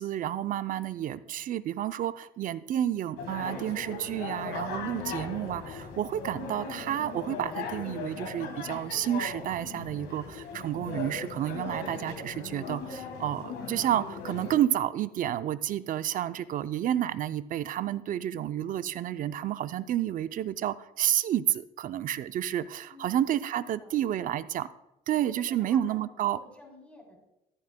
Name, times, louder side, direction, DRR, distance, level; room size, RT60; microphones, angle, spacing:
voice 1, 0.0-24.7 25.1-26.4, right 11 dB, 55° right, 13 dB, 0.5 m, -30 dB
sound 1, 3.2-14.6, left 5 dB, 85° left, 1.6 m, -39 dB
voice 2, 23.6-23.9 24.2-24.4 25.2-27.2, left 1 dB, 5° left, 0 dB, 3.3 m, -51 dB
14.0 x 9.4 x 2.2 m, 0.91 s
cardioid pair, 110°, 17 cm